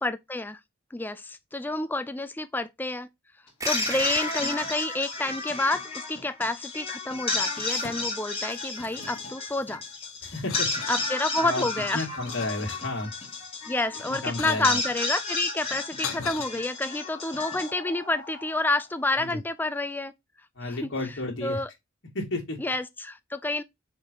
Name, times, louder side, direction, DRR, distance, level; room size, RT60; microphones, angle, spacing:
voice 1, 0.0-0.6 0.9-3.1 3.6-9.8 10.9-12.0 13.7-20.1 20.7-20.9 21.4-21.7 22.6-23.6, left 2 dB, 10° left, 0.4 m, -29 dB
sound 1, 3.5-18.7, left 3 dB, 25° left, 2.4 m, -33 dB
sound 2, 3.6-6.6, right 3 dB, 15° right, 0.8 m, -38 dB
sound 3, 7.2-8.2 8.5-9.8 10.3-11.0 11.6-13.1 13.9-14.8 15.6-16.4, left 6 dB, 80° left, 1.3 m, -40 dB
voice 2, 10.2-10.7 11.4-11.7 11.9-13.1 14.1-14.8 19.2-19.4 20.6-21.6 22.1-22.6, left 2 dB, 60° left, 2.5 m, -32 dB
5.2 x 4.2 x 5.3 m
head